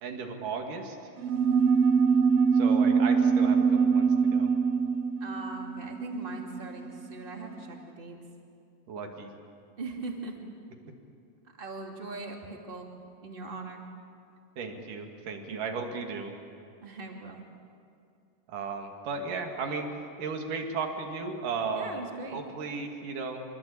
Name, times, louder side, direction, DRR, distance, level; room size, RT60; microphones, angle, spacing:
voice 1, 0.0-1.0 2.5-4.5 8.9-9.3 14.6-16.3 18.5-19.9 20.2-22.0 22.3-23.4, right 4 dB, 85° right, 3 dB, 3.9 m, -35 dB
sound 1, 1.2-7.1, right 5 dB, 60° right, 1.8 m, -24 dB
voice 2, 5.2-8.2 9.8-10.5 11.6-12.9 13.2-13.8 15.5-15.6 16.8-17.4 21.7-22.4, right 3 dB, 15° right, 1 dB, 2.6 m, -40 dB
25.0 x 25.0 x 8.7 m, 2.5 s
omnidirectional pair, 3.6 m